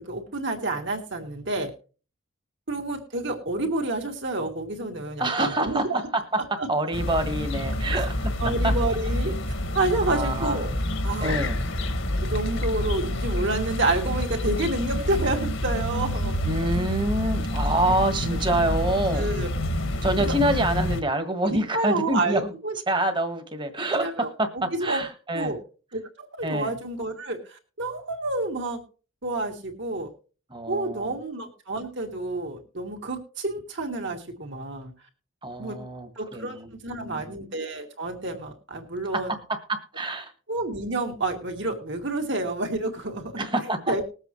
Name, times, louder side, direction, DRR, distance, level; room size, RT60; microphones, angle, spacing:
voice 1, 0.0-1.7 2.7-6.1 6.6-6.9 7.9-8.0 8.4-9.4 9.7-10.7 11.0-11.4 12.3-16.4 17.9-18.1 19.1-19.5 20.2-20.4 21.4-23.0 23.9-25.0 25.3-25.6 25.9-28.8 29.2-30.1 30.7-34.9 35.6-35.8 36.2-39.4 40.5-43.5 43.9-44.0, right 2 dB, 55° right, 3 dB, 2.5 m, -29 dB
voice 2, 5.2-6.2 6.5-8.7 10.1-10.6 11.2-11.6 16.4-19.3 20.0-22.5 22.9-25.5 26.4-26.8 30.5-31.2 35.4-37.2 39.3-40.3 43.4-43.9, right 1 dB, 20° right, 7 dB, 1.6 m, -27 dB
sound 1, 6.9-21.0, left 1 dB, 65° left, 1.6 m, -28 dB
20.5 x 8.1 x 3.1 m, 0.36 s
head